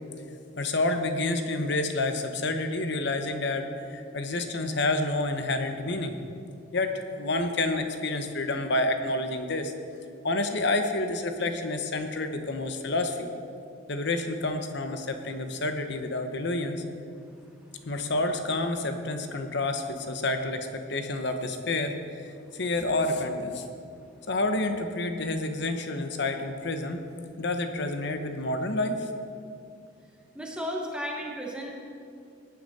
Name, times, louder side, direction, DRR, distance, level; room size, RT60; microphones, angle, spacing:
voice 1, 0.6-6.2 6.7-9.7 10.2-13.3 13.9-16.8 17.8-23.6 24.3-27.0 27.4-29.1, left 2 dB, 60° left, 6 dB, 1.1 m, -29 dB
voice 2, 30.3-31.7, equal, 5° right, -1 dB, 1.2 m, -34 dB
18.0 x 9.8 x 4.3 m, 2.5 s
head